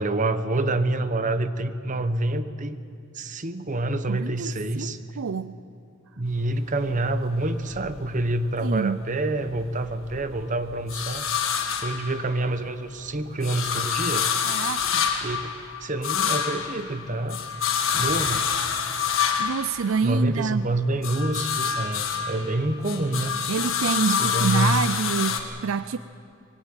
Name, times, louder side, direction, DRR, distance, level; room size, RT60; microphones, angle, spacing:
voice 1, 0.0-2.8 3.1-5.0 6.2-11.3 11.8-14.3 15.2-15.5 15.8-17.4 17.9-18.5 20.0-23.4 24.2-25.1, right 1 dB, 40° right, 11 dB, 1.0 m, -27 dB
voice 2, 4.1-5.5 8.6-9.0 14.4-15.1 19.4-20.7 23.5-26.0, right 6 dB, 80° right, 14 dB, 0.4 m, -27 dB
sound 1, 6.3-8.7 9.1-12.7 13.1-20.5 20.8-25.4, left 7 dB, 75° left, 1.7 m, -28 dB
21.5 x 16.5 x 9.0 m, 2.5 s
head